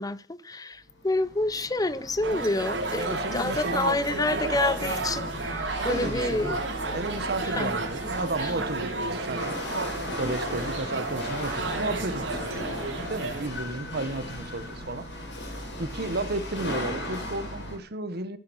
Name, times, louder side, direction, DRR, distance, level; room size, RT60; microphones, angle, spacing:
voice 1, 0.0-6.6 7.6-7.7 8.4-8.5, left 2 dB, 20° left, 0.7 m, -28 dB
Chatter / Hiss / Rattle, 0.9-17.8, left 1 dB, 70° left, 6.5 m, -37 dB
sound 1, 2.2-13.5, right 3 dB, 85° right, 3.5 m, -32 dB
voice 2, 3.0-4.0 5.8-6.5 6.9-9.9 10.2-15.1 15.8-18.4, right 2 dB, 60° right, 1.4 m, -33 dB
13.5 x 10.5 x 6.4 m
head